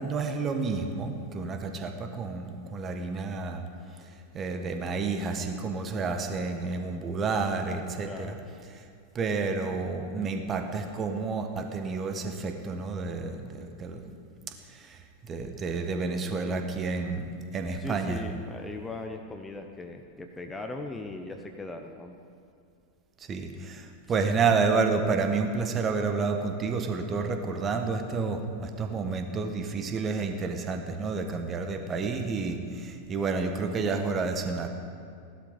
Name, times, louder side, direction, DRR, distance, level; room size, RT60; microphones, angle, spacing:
voice 1, 0.0-3.7 4.3-8.4 8.7-8.8 9.1-14.2 14.7-18.2 23.3-34.7, right 4 dB, 25° right, 6 dB, 1.3 m, -30 dB
voice 2, 8.0-8.4 16.4-16.7 17.8-22.2, left 2 dB, 10° left, 5 dB, 0.8 m, -39 dB
16.5 x 11.5 x 5.1 m, 2.4 s
figure-of-eight pair, 90°, 0 cm